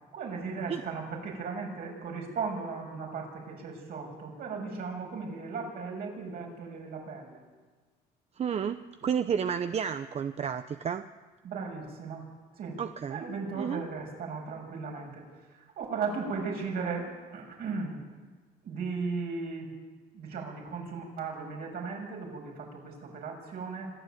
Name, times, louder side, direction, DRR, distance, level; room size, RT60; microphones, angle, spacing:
voice 1, 0.1-7.4 11.4-12.3 12.6-12.8 13.1-15.2 15.5-18.0 18.6-19.7 20.1-23.9, right 4 dB, 65° right, 0 dB, 7.3 m, -36 dB
voice 2, 8.4-11.0 12.8-13.2 13.6-13.8, right 7 dB, 40° right, 10 dB, 0.8 m, -31 dB
26.0 x 12.5 x 9.3 m, 1.4 s
cardioid pair, 110°, 17 cm